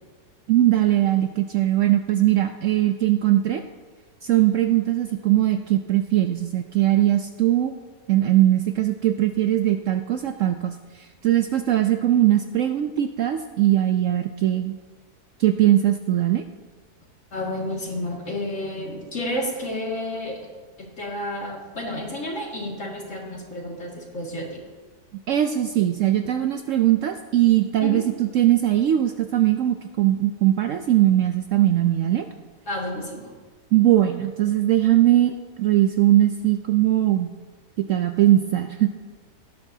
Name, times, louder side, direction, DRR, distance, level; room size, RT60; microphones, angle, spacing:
voice 1, 0.5-3.6 4.2-7.7 8.1-14.7 15.4-16.4 25.3-32.3 33.7-37.3 37.9-38.9, right 13 dB, 70° right, 7 dB, 0.8 m, -20 dB
voice 2, 17.3-20.4 20.8-24.6 27.8-28.0 32.7-33.3, left 1 dB, 50° left, -2 dB, 2.5 m, -31 dB
17.5 x 10.5 x 2.7 m, 1.4 s
omnidirectional pair, 1.7 m